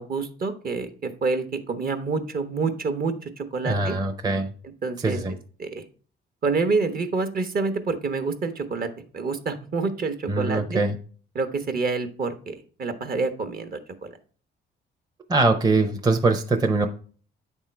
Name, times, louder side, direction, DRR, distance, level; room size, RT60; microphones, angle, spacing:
voice 1, 0.0-4.0 4.8-5.2 5.6-5.8 6.4-8.9 9.1-10.8 11.3-14.1, right 4 dB, 50° right, 8 dB, 1.0 m, -27 dB
voice 2, 3.6-4.5 5.0-5.3 10.3-11.0 15.3-16.9, right 3 dB, 20° right, 4 dB, 0.7 m, -22 dB
8.6 x 3.6 x 4.4 m, 0.41 s
cardioid pair, 90°, 20 cm